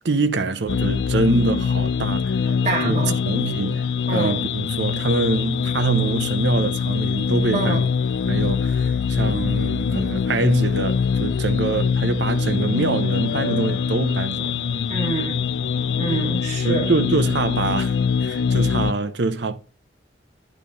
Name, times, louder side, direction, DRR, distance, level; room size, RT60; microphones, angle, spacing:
voice 1, 0.0-2.4 2.8-7.9 8.3-14.6 16.6-19.6, right 3 dB, 75° right, 0.7 m, -24 dB
sound 1, 0.7-18.9, left 6 dB, 80° left, 0.4 m, -23 dB
voice 2, 2.6-3.2 4.1-4.4 7.5-7.9 14.9-15.4 16.0-16.9, right 3 dB, 40° right, 2.2 m, -26 dB
9.0 x 4.1 x 5.1 m
head